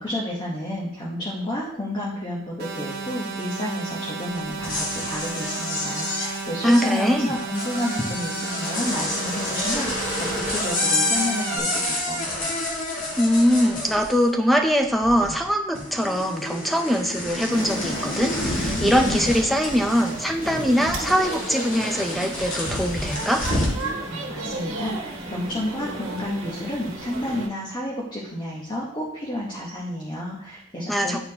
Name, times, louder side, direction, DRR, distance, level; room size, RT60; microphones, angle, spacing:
voice 1, 0.0-12.3 24.1-31.2, left 1 dB, 20° left, -5 dB, 1.1 m, -31 dB
sound 1, 2.6-11.6, right 4 dB, 50° right, 1.1 m, -33 dB
sound 2, 4.5-14.5 14.8-15.5 15.7-23.8, left 1 dB, 85° left, 2.0 m, -29 dB
voice 2, 6.6-7.3 13.2-23.4 30.9-31.2, equal, ahead, 4 dB, 0.5 m, -22 dB
sound 3, 17.5-27.5, right 2 dB, 85° right, 1.3 m, -35 dB
9.7 x 4.2 x 2.9 m, 0.72 s
head